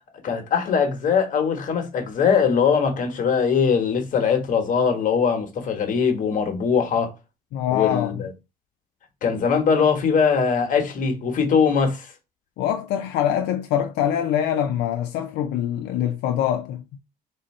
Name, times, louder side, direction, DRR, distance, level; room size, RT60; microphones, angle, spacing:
voice 1, 0.2-7.1 7.7-8.3 9.2-12.1, left 6 dB, 50° left, 1.2 m, -21 dB
voice 2, 7.5-8.2 12.6-17.0, left 10 dB, 85° left, 0.4 m, -24 dB
3.5 x 2.7 x 4.2 m
cardioid pair, 110°, 17 cm